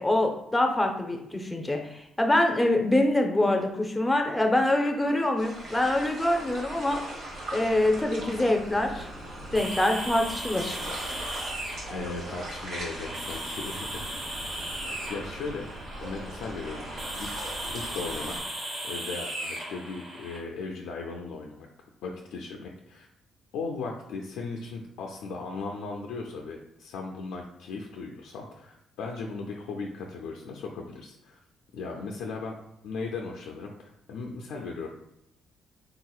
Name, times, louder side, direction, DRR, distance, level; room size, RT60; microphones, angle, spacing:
voice 1, 0.0-7.0 7.5-9.1 9.5-10.8, left 1 dB, 10° left, 3 dB, 0.6 m, -25 dB
sound 1, 5.4-18.4, right 1 dB, 80° right, 1.1 m, -40 dB
sound 2, 9.5-20.4, right 1 dB, 45° right, 1.2 m, -37 dB
voice 2, 11.9-14.1 14.7-15.7 16.0-16.8 17.1-17.3 17.7-18.4 18.8-21.7 22.0-23.1 23.5-31.4 31.7-32.6 32.8-34.9, left 4 dB, 90° left, 0 dB, 0.4 m, -37 dB
3.8 x 2.8 x 2.3 m, 0.80 s
cardioid pair, 90°, 0 cm